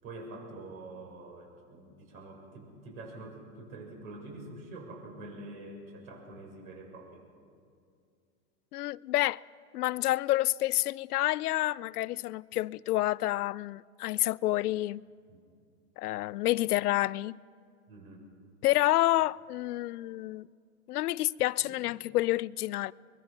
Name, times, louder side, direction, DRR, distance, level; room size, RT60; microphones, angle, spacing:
voice 1, 0.0-7.2 15.3-15.4 17.9-18.2 21.6-21.8, right 2 dB, 65° right, 7.0 m, -46 dB
voice 2, 8.7-9.4 9.7-15.0 16.0-17.4 18.6-20.5 20.9-22.9, left 16 dB, 85° left, 0.5 m, -29 dB
24.0 x 21.0 x 5.9 m
hypercardioid pair, 130°, 44 cm